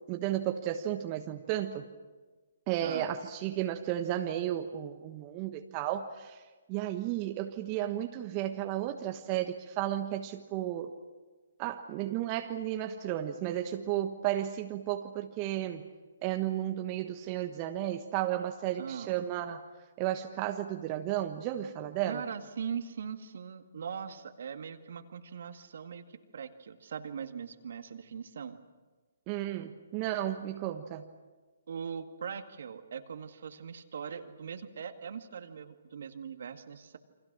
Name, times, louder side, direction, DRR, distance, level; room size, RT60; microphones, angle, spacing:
voice 1, 0.1-1.8 2.7-6.4 6.7-10.9 11.6-15.9 16.2-19.6 20.0-22.2 29.3-31.1, right 12 dB, 30° right, 5 dB, 1.3 m, -33 dB
voice 2, 18.8-19.3 22.1-28.6 31.7-37.0, right 7 dB, 60° right, 7 dB, 1.9 m, -41 dB
29.0 x 25.0 x 6.1 m, 1.3 s
figure-of-eight pair, 135°, 0 cm